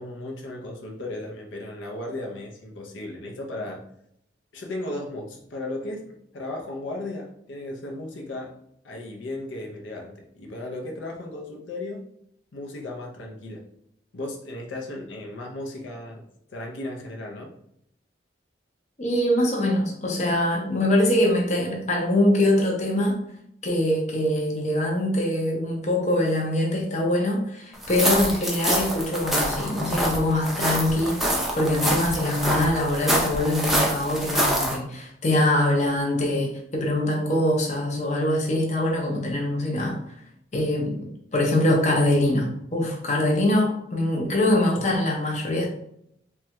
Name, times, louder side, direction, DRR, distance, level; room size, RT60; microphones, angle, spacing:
voice 1, 0.0-3.8 4.5-8.5 8.8-12.0 12.5-13.6 14.1-16.2 16.5-17.5, left 1 dB, 80° left, 0 dB, 0.6 m, -35 dB
voice 2, 19.0-23.2 23.6-40.0 40.5-45.7, left 1 dB, 40° left, 0 dB, 0.6 m, -23 dB
sound 1, 27.8-34.8, right 1 dB, ahead, 0.4 m, -25 dB
3.2 x 2.2 x 2.9 m, 0.73 s
head